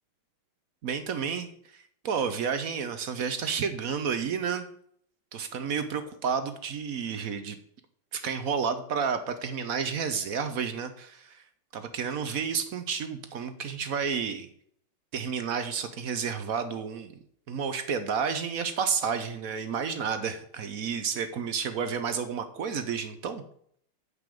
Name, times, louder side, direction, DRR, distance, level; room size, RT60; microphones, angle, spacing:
voice 1, 0.8-1.5 1.7-4.7 5.3-7.6 8.1-11.4 11.7-14.5 15.1-17.1 17.5-23.4, right 6 dB, 60° right, 10 dB, 0.9 m, -31 dB
8.2 x 5.4 x 7.6 m, 0.65 s
omnidirectional pair, 2.3 m